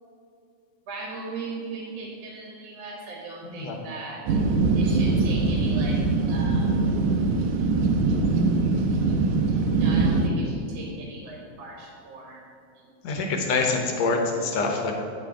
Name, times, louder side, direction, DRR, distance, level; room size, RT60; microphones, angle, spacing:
voice 1, 0.9-4.2 4.7-6.0 6.3-6.8 9.7-12.4 13.1-13.3, right 3 dB, 60° right, -2 dB, 2.2 m, -38 dB
voice 2, 3.5-3.8 13.0-14.9, left 3 dB, 70° left, 3 dB, 2.0 m, -25 dB
sound 1, 4.2-10.3, right 3 dB, 90° right, 2.1 m, -22 dB
9.1 x 6.3 x 4.5 m, 2.6 s
omnidirectional pair, 3.4 m